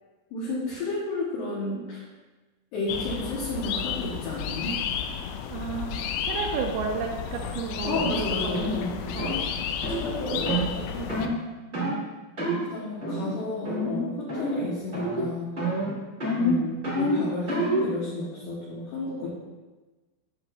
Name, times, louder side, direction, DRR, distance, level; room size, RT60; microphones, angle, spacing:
voice 1, 0.3-2.1 2.7-4.8 7.8-9.4 9.9-11.2 12.7-15.6 16.4-19.3, left 2 dB, 65° left, -7 dB, 2.9 m, -32 dB
sound 1, 2.9-11.3, left 8 dB, 90° left, 2.6 m, -32 dB
voice 2, 5.5-8.0 9.2-9.5 10.3-10.6 11.7-12.1, right 6 dB, 80° right, 1 dB, 3.2 m, -32 dB
sound 2, 7.9-8.1 8.5-8.8 9.2-9.4 9.8-10.0 10.5-10.7 11.1-11.4 11.7-12.0 12.4-12.6 13.0-13.4 13.6-14.0 14.3-14.7 14.9-15.3 15.6-17.9, equal, 40° right, 0.7 m, -27 dB
8.8 x 7.4 x 2.5 m, 1.2 s
omnidirectional pair, 5.9 m